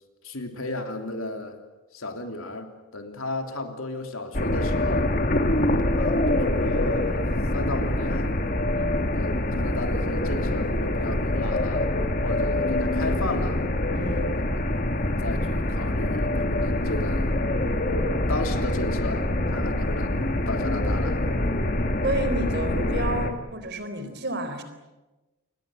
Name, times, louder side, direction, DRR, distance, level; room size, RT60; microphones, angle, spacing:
voice 1, 0.2-1.6 1.9-5.1 5.9-8.4 9.1-11.9 12.2-13.6 14.4-17.3 18.3-19.2 19.5-21.2, left 2 dB, 70° left, 5 dB, 3.2 m, -34 dB
sound 1, 4.3-23.3, left 1 dB, 40° left, 1.9 m, -25 dB
voice 2, 13.9-14.2 22.0-24.6, right 1 dB, 50° right, 9 dB, 3.9 m, -30 dB
28.5 x 22.5 x 7.8 m, 1.1 s
head